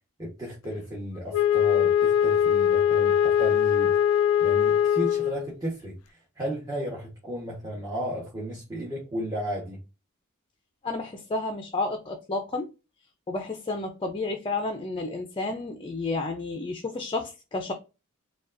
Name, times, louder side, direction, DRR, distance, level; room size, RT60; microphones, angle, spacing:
voice 1, 0.2-4.0 4.4-9.8, equal, 15° right, 1.2 m, -34 dB
Wind instrument woodwind instrument, 1.3-5.5, left 9 dB, 90° left, 0.3 m, -22 dB
voice 2, 10.8-12.7 13.3-17.7, left 3 dB, 25° left, 0.5 m, -31 dB
5.1 x 2.4 x 2.5 m
head